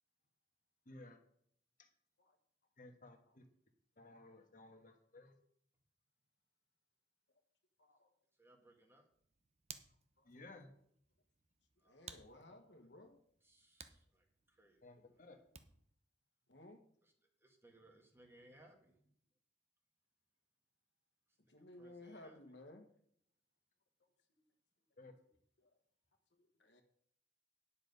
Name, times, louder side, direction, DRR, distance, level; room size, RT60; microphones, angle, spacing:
voice 1, 0.8-1.2 1.8-1.9 2.8-3.4 4.0-5.3 10.2-10.7 14.8-15.4 25.0-25.1, left 2 dB, 45° left, 5 dB, 1.4 m, -57 dB
voice 2, 7.8-8.1 10.2-10.3 11.8-13.2 15.1-15.2 16.5-16.8 21.5-22.8 25.6-25.8 26.4-26.8, left 1 dB, 70° left, 5 dB, 1.5 m, -58 dB
voice 3, 8.3-9.1 11.8-12.6 13.4-15.4 17.0-17.1 17.4-19.1 21.3-22.4, right 1 dB, 15° right, 3 dB, 1.5 m, -67 dB
Hands, 9.1-16.0, right 7 dB, 35° right, 0.8 m, -59 dB
10.0 x 7.1 x 5.4 m, 0.67 s
head